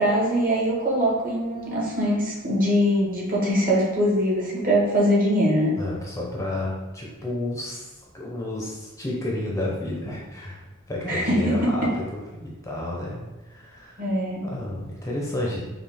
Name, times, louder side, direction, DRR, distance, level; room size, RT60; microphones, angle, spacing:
voice 1, 0.0-5.7 11.1-11.9 14.0-14.4, equal, 45° right, -4 dB, 1.3 m, -22 dB
voice 2, 5.8-14.0 14.4-15.6, left 1 dB, 15° left, -3 dB, 0.7 m, -31 dB
5.6 x 2.4 x 3.4 m, 1.1 s
head